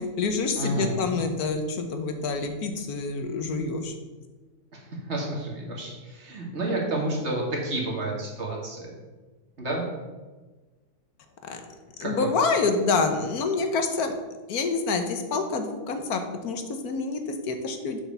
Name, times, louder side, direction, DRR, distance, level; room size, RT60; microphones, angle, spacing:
voice 1, 0.0-4.0 11.4-11.6 12.0-14.1 14.5-18.0, left 4 dB, 80° left, 6 dB, 1.4 m, -27 dB
voice 2, 0.6-1.0 4.7-4.8 5.1-8.9 9.6-9.8 12.0-12.3, right 2 dB, 45° right, -2 dB, 2.1 m, -30 dB
7.4 x 5.2 x 6.8 m, 1.3 s
omnidirectional pair, 1.6 m